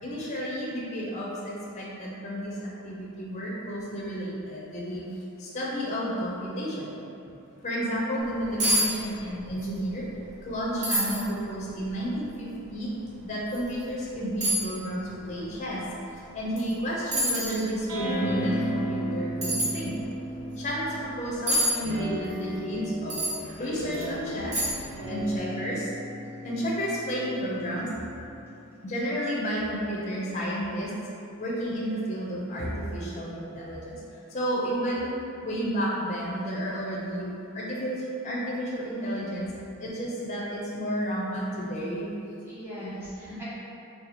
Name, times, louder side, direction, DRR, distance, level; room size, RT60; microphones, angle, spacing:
voice 1, 0.0-5.0 5.4-6.9 7.6-10.1 10.4-12.9 13.2-15.8 16.3-20.0 20.6-23.2 23.6-24.6 25.1-25.9 26.4-27.9 28.8-30.9 31.4-34.0 34.3-35.1 35.4-39.5 39.8-42.1 42.8-42.9 43.3-43.4, equal, 30° left, -5 dB, 0.4 m, -31 dB
sound 1, 8.2-8.3 8.6-8.9 9.2-9.7 10.1-10.2 10.8-11.3 11.9-12.0 13.5-13.6 14.4-14.7 16.6-16.7 17.1-17.6 19.4-19.7 21.5-21.7 23.1-23.4 23.9-24.0 24.5-24.9 25.2-25.3, right 1 dB, 30° right, 0.7 m, -26 dB
sound 2, 17.9-21.3 21.8-28.6, equal, 90° right, 0.6 m, -34 dB
voice 2, 38.9-39.4 42.5-43.4, left 1 dB, 10° right, -11 dB, 1.0 m, -42 dB
2.6 x 2.3 x 4.1 m, 2.7 s
head